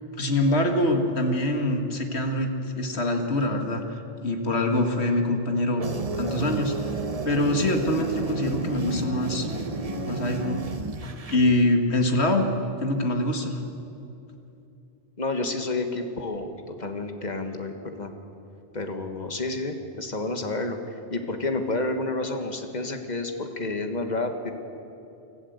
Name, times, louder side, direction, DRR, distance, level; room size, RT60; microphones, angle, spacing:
voice 1, 0.2-3.8 4.2-5.8 6.2-9.5 10.1-10.6 11.3-12.4 12.8-13.6, left 1 dB, 70° left, 4 dB, 2.1 m, -24 dB
sound 1, 5.8-11.4, right 3 dB, 35° right, 1.0 m, -31 dB
voice 2, 15.2-18.1 18.7-24.5, left 2 dB, 40° left, 5 dB, 1.7 m, -30 dB
25.0 x 14.5 x 8.1 m, 2.8 s
omnidirectional pair, 1.2 m